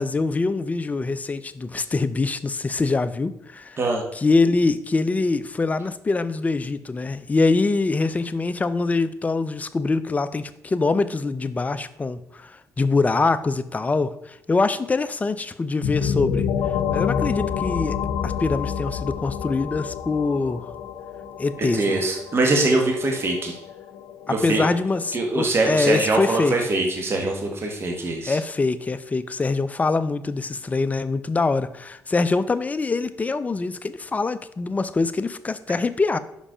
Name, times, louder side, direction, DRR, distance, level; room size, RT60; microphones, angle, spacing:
voice 1, 0.0-3.8 4.1-16.5 16.9-20.7 21.4-22.0 24.3-26.6 28.2-36.2, left 3 dB, 25° left, 12 dB, 0.5 m, -24 dB
sound 1, 15.8-25.4, left 7 dB, 85° left, 0.7 m, -29 dB
voice 2, 21.6-23.6 24.3-24.7 25.1-28.4, right 2 dB, 40° right, 1 dB, 1.4 m, -23 dB
5.4 x 5.1 x 4.9 m, 0.81 s
cardioid pair, 85°, 6 cm